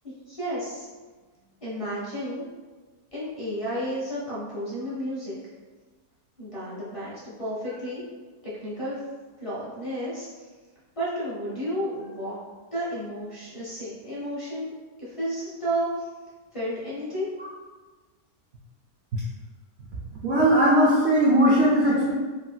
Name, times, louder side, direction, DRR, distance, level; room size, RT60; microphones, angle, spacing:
voice 1, 0.0-0.9 1.6-2.4 3.1-5.4 6.4-7.1 7.4-8.0 8.6-9.0 9.4-10.5 10.9-12.4 12.7-14.7 15.0-16.1 16.5-17.3, equal, 35° left, -9 dB, 0.5 m, -32 dB
voice 2, 20.2-22.1, right 1 dB, 85° right, -6 dB, 0.5 m, -19 dB
3.1 x 2.8 x 2.2 m, 1.3 s
omnidirectional pair, 1.7 m